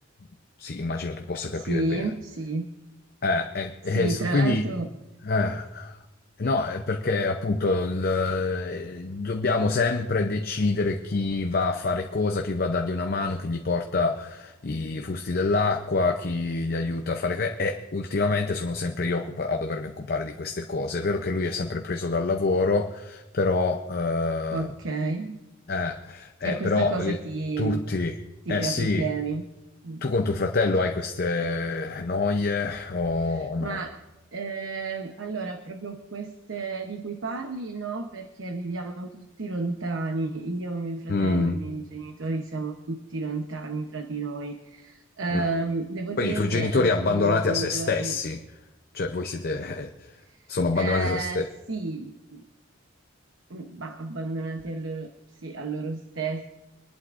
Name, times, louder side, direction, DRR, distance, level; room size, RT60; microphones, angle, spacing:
voice 1, 0.6-2.1 3.2-4.6 5.2-6.0 6.4-24.7 25.7-27.2 27.6-28.2 28.5-29.1 30.0-33.8 41.1-41.6 45.3-45.5 46.2-48.4 48.9-49.9 50.5-51.5, left 3 dB, 50° left, 4 dB, 0.6 m, -26 dB
voice 2, 1.6-2.7 3.9-4.9 24.5-25.4 26.4-27.8 28.5-29.5 29.8-30.0 33.2-33.9 34.3-48.1 50.3-50.4 50.8-51.4 51.7-52.4 53.5-55.1 55.4-56.5, right 3 dB, 85° right, 5 dB, 0.9 m, -31 dB
25.5 x 11.5 x 2.5 m, 1.0 s
head